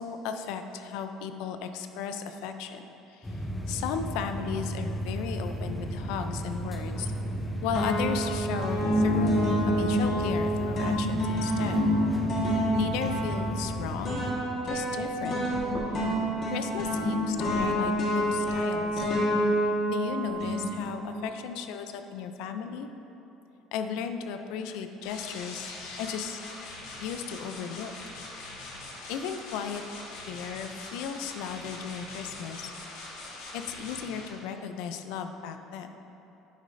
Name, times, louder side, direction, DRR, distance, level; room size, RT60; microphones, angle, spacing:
voice 1, 0.0-2.8 3.7-7.1 7.6-11.8 12.7-14.3 14.6-15.4 16.5-19.0 19.9-22.9 23.7-26.4 26.9-27.9 29.1-29.8 30.3-32.7 33.5-35.9, left 7 dB, 65° left, 8 dB, 0.4 m, -35 dB
sound 1, 3.2-14.3, right 1 dB, 5° left, 0.5 m, -34 dB
sound 2, 7.0-7.4 7.7-21.2, equal, 35° left, 1.3 m, -28 dB
sound 3, 25.0-34.3, left 2 dB, 90° left, 1.3 m, -42 dB
10.5 x 6.4 x 2.6 m, 3.0 s
cardioid pair, 175°, 0 cm